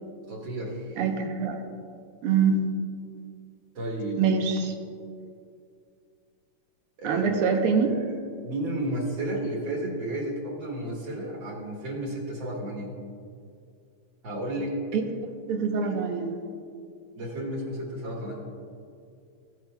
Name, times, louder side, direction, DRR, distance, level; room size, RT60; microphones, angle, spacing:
voice 1, 0.3-1.0 3.8-4.2 7.0-8.1 8.4-13.0 14.2-14.8 15.8-15.9 17.2-18.4, right 1 dB, 65° right, -2 dB, 2.3 m, -32 dB
voice 2, 1.0-1.6 2.2-2.6 4.2-4.7 7.0-7.9 14.9-15.0 15.5-16.4, right 5 dB, 85° right, 5 dB, 1.8 m, -24 dB
15.5 x 9.2 x 2.3 m, 2.3 s
omnidirectional pair, 2.4 m